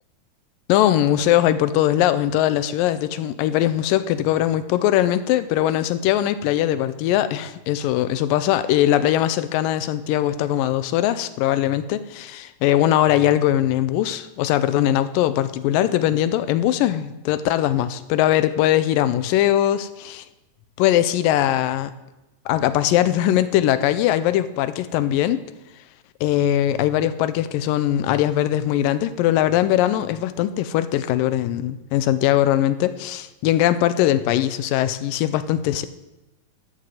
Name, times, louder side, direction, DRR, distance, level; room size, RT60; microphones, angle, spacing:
voice 1, 0.7-20.2 20.8-21.9 22.5-25.4 26.2-35.9, left 12 dB, 85° left, 13 dB, 2.3 m, -20 dB
12.5 x 6.7 x 7.8 m, 0.99 s
omnidirectional pair, 4.0 m